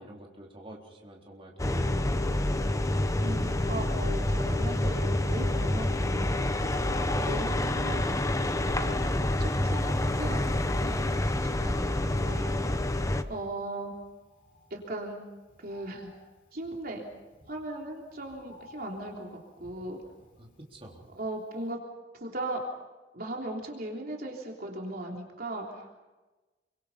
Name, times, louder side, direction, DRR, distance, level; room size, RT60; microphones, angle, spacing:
voice 1, 0.0-2.7 20.4-21.0, right 1 dB, 30° right, -2 dB, 4.0 m, -48 dB
sound 1, 1.6-13.2, left 1 dB, 20° left, 1.0 m, -28 dB
Bird, 2.2-21.3 21.7-21.8, left 1 dB, 55° left, 7.7 m, -51 dB
voice 2, 3.2-6.7 7.1-8.2 8.6-12.6 13.3-13.9 14.7-15.2 15.6-16.1 16.5-17.0 17.5-20.0 21.1-21.8 22.1-22.6 23.1-25.9, right 1 dB, 60° right, 0 dB, 3.4 m, -38 dB
28.5 x 24.5 x 5.6 m, 1.2 s
head